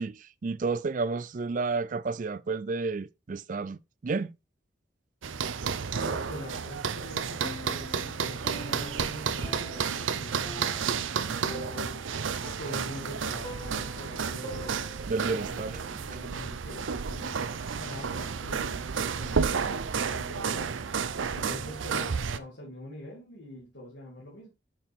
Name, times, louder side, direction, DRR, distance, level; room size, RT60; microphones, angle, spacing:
voice 1, 0.0-4.3 15.1-15.7, right 4 dB, 40° right, 0.4 m, -31 dB
sound 1, 5.2-22.4, right 6 dB, 85° right, 0.6 m, -31 dB
voice 2, 5.9-12.0 12.6-14.8 15.3-17.4 17.8-20.8 21.3-24.5, left 1 dB, 70° left, 2.5 m, -44 dB
Piano, 7.4-15.3, left 1 dB, 20° left, 0.7 m, -46 dB
6.9 x 6.0 x 3.5 m
head